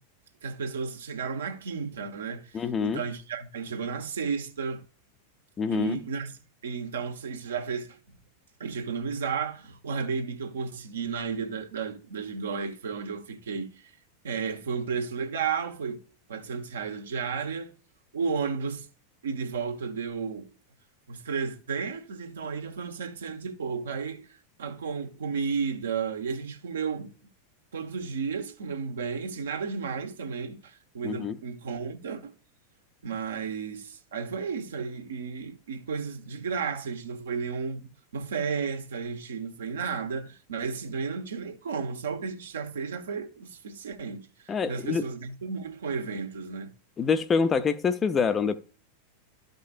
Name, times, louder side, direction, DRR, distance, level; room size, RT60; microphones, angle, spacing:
voice 1, 0.4-4.8 5.7-6.3 6.6-8.0 8.6-13.7 14.2-16.0 16.3-17.7 18.1-18.9 19.2-20.5 21.1-24.3 24.6-27.1 27.7-32.3 33.0-46.7, right 5 dB, 65° right, 1.1 m, -33 dB
voice 2, 2.5-3.0 5.6-6.0 31.0-31.4 44.5-45.0 47.0-48.6, left 5 dB, 20° left, 0.6 m, -26 dB
13.0 x 5.2 x 2.5 m
figure-of-eight pair, 90°, 0 cm